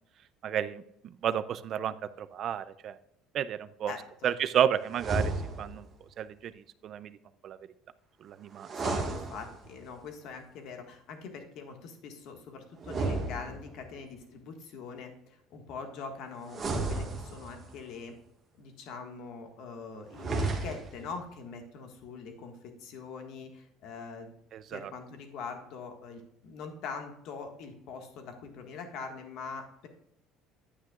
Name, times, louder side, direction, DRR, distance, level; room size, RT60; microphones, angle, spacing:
voice 1, 0.4-3.0 3.3-3.9 4.2-5.9 6.2-7.2 7.4-7.6 8.2-8.7 24.5-24.9, right 9 dB, 40° right, 14 dB, 0.4 m, -32 dB
voice 2, 3.9-4.3 8.7-18.1 18.6-24.3 24.7-29.9, left 5 dB, 60° left, 4 dB, 1.6 m, -43 dB
sound 1, 4.9-5.9 8.6-9.9 12.8-14.0 16.5-17.7 20.1-21.1, right 3 dB, 25° right, 1.5 m, -33 dB
9.7 x 9.1 x 2.4 m, 0.74 s
cardioid pair, 155°, 0 cm